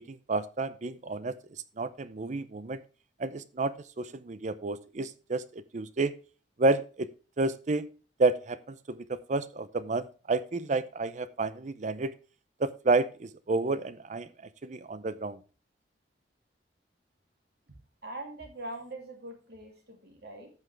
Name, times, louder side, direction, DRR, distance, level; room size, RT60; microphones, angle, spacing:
voice 1, 0.0-1.3 1.8-2.8 3.2-6.1 6.6-7.1 7.4-7.9 8.2-12.1 12.6-14.3 14.6-15.4, right 3 dB, 40° right, 14 dB, 0.5 m, -30 dB
voice 2, 18.0-20.5, right 1 dB, 60° right, 2 dB, 2.7 m, -42 dB
14.0 x 6.0 x 3.3 m, 0.36 s
head